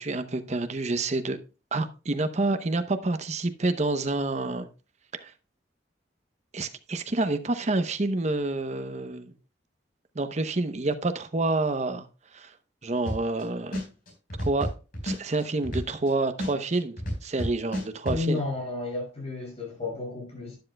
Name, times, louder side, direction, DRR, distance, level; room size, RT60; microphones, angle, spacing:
voice 1, 0.0-1.4 1.7-4.7 5.1-5.3 6.5-9.3 10.1-12.1 12.3-12.5 12.8-13.8 14.4-14.7 15.0-18.4, right 2 dB, 40° right, 0.8 m, -28 dB
sound 1, 13.1-13.4 13.7-16.1 16.4-18.2, equal, 50° left, 4.3 m, -30 dB
voice 2, 18.0-20.6, left 3 dB, 35° left, 6.0 m, -32 dB
11.5 x 10.5 x 2.2 m
head